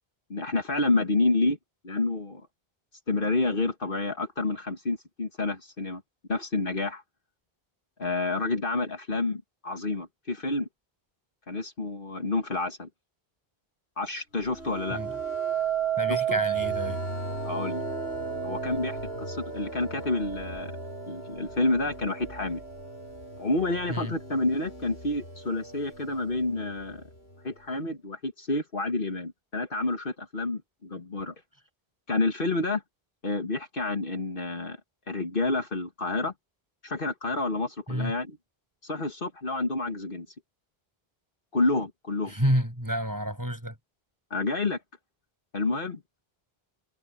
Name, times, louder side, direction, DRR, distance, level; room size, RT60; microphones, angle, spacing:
voice 1, 0.3-1.6 1.8-2.5 3.1-6.0 6.3-7.0 8.0-10.7 11.5-12.9 14.0-15.0 16.1-16.4 17.4-17.8 18.4-20.7 21.1-22.6 23.4-27.0 27.4-31.3 32.1-32.8 33.2-34.8 35.1-36.3 36.8-38.4 38.8-40.3 41.5-42.3 44.3-44.8 45.5-46.0, left 2 dB, 60° left, 1.9 m, -29 dB
sound 1, 14.6-23.7 24.2-24.7, right 6 dB, 80° left, 4.9 m, -33 dB
voice 2, 16.0-17.0 23.9-24.1 37.9-38.1 42.3-43.7, equal, 20° right, 7.7 m, -29 dB
omnidirectional pair, 1.1 m